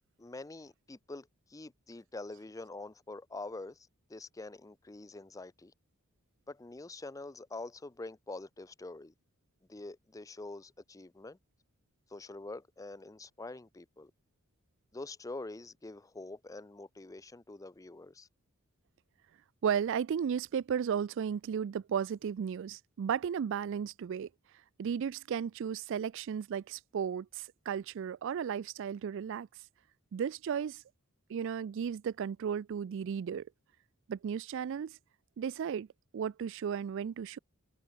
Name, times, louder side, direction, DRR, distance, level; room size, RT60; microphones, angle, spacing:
voice 1, 0.2-5.7 6.5-9.1 9.7-11.4 12.1-14.1 14.9-18.3, left 2 dB, 15° left, 0.5 m, -45 dB
voice 2, 19.6-24.3 24.8-29.5 30.1-30.8 31.3-33.5 34.1-34.9 35.4-35.9 36.1-37.4, right 7 dB, 60° right, 0.3 m, -34 dB
head